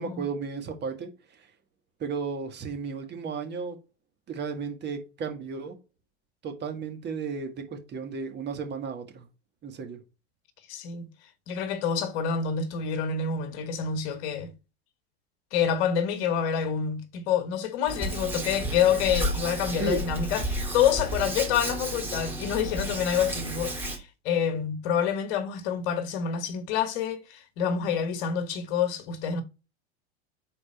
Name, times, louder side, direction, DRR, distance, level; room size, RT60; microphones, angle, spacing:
voice 1, 0.0-1.5 2.0-3.8 4.3-5.8 6.4-9.3 9.6-10.0 19.8-20.0, right 5 dB, 30° right, 1.9 m, -34 dB
voice 2, 10.7-11.1 11.5-14.5 15.5-29.4, left 8 dB, 55° left, 1.4 m, -27 dB
Hands, 17.9-24.0, equal, 5° right, 2.5 m, -32 dB
5.2 x 4.2 x 4.3 m
hypercardioid pair, 110°, 33 cm